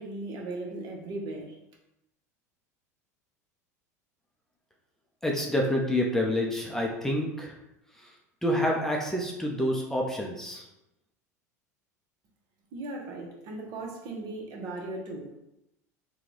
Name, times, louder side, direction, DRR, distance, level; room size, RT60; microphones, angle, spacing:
voice 1, 0.0-1.6 12.7-15.3, right 2 dB, 50° right, 0 dB, 0.9 m, -37 dB
voice 2, 5.2-7.5 8.4-10.6, left 1 dB, 5° left, -1 dB, 0.6 m, -28 dB
3.6 x 2.3 x 3.1 m, 0.87 s
hypercardioid pair, 80°, 9 cm